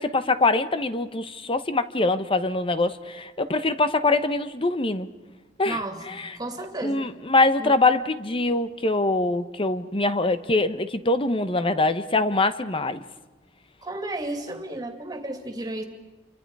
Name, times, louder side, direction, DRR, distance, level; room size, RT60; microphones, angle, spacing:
voice 1, 0.0-5.1 5.6-5.8 6.1-6.4 6.8-13.0, left 2 dB, 30° left, 11 dB, 1.0 m, -23 dB
voice 2, 5.6-7.0 7.6-7.7 13.8-15.8, right 2 dB, 20° right, 4 dB, 2.7 m, -33 dB
28.5 x 24.5 x 4.9 m, 1.2 s
head